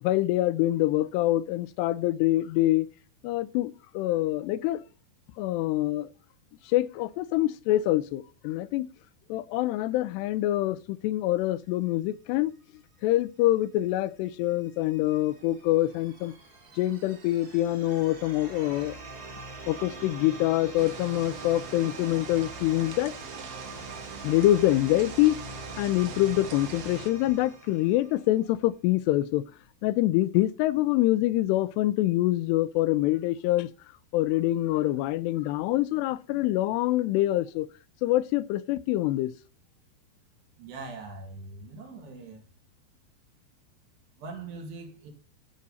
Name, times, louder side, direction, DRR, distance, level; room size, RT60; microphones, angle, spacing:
voice 1, 0.0-2.9 3.2-4.8 5.4-6.1 6.7-8.9 9.3-12.5 13.0-16.3 16.8-18.9 19.7-23.1 24.2-25.4 25.8-29.5 29.8-33.7 34.1-37.7 38.0-39.3, left 15 dB, 90° left, 2.7 m, -25 dB
sound 1, 14.5-28.3, right 3 dB, 40° right, 1.4 m, -43 dB
sound 2, 20.8-27.1, right 8 dB, 70° right, 2.2 m, -44 dB
voice 2, 40.6-42.4 44.2-45.1, right 3 dB, 85° right, 4.5 m, -41 dB
15.5 x 5.4 x 4.1 m
omnidirectional pair, 4.7 m